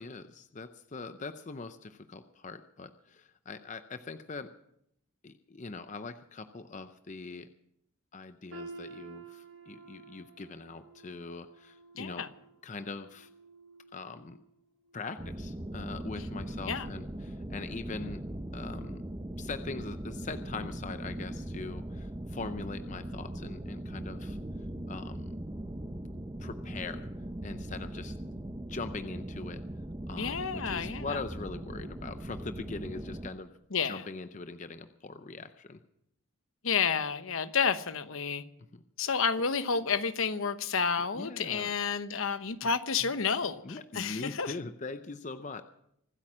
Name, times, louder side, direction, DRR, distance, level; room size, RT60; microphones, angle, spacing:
voice 1, 0.0-4.5 5.2-7.5 8.1-12.3 12.6-13.3 13.9-14.4 14.9-18.2 18.5-19.0 19.4-24.4 24.9-25.3 26.4-27.1 27.4-29.6 30.1-33.5 33.8-35.8 38.7-39.2 41.1-41.7 42.6-42.7 43.0-43.1 43.4-45.6, left 3 dB, 35° left, 0.6 m, -42 dB
sound 1, 8.5-14.5 14.9-15.1 15.8-15.9, right 3 dB, 70° right, 2.2 m, -51 dB
voice 2, 12.0-12.3 16.7-16.9 30.2-31.0 33.7-34.0 36.6-38.4 39.0-44.5, left 6 dB, 70° left, 1.0 m, -30 dB
sound 2, 15.2-33.3, right 1 dB, 20° right, 0.8 m, -40 dB
25.0 x 8.8 x 6.2 m
head